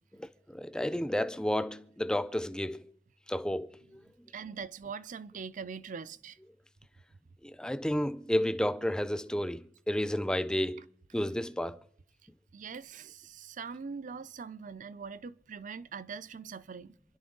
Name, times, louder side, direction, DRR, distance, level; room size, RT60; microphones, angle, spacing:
voice 1, 0.2-2.9 3.3-4.0 7.4-10.9 11.1-11.8, left 1 dB, 5° left, 0.5 m, -31 dB
voice 2, 4.3-6.4 12.5-17.0, right 5 dB, 45° right, 0.5 m, -42 dB
27.0 x 11.0 x 3.9 m
head